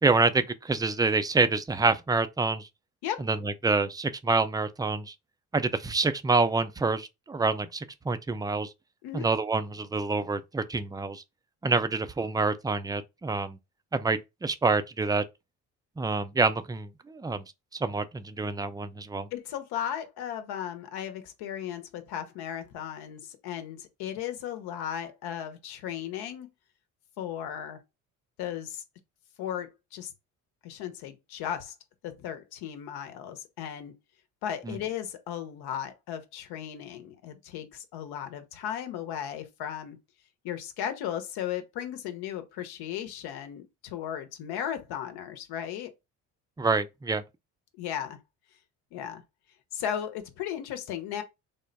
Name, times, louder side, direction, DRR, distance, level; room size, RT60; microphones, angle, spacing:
voice 1, 0.0-2.7 3.3-5.1 5.5-8.7 9.1-11.2 11.6-13.6 13.9-15.2 16.0-17.4 17.7-19.3 34.7-34.8 46.6-47.2, right 3 dB, 10° right, 0.4 m, -27 dB
voice 2, 19.3-26.5 27.2-27.8 28.4-28.8 29.4-30.1 30.6-31.7 32.0-33.9 34.4-40.0 40.4-45.9 47.8-48.2 48.9-49.2 49.7-51.2, left 10 dB, 70° left, 0.9 m, -36 dB
3.5 x 2.1 x 4.0 m
hypercardioid pair, 65°, 41 cm